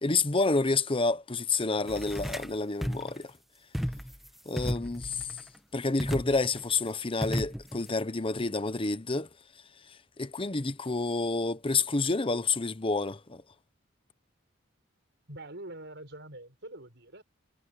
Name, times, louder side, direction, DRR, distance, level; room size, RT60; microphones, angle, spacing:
voice 1, 0.0-3.3 4.5-5.3 5.7-9.3 10.2-13.4, left 3 dB, 25° left, 0.9 m, -29 dB
sound 1, 1.9-2.5 2.8-3.2 3.7-4.3 4.6-5.4 6.0-6.6 7.2-7.9, equal, ahead, 1.2 m, -34 dB
voice 2, 15.3-17.2, right 1 dB, 60° right, 6.5 m, -44 dB
head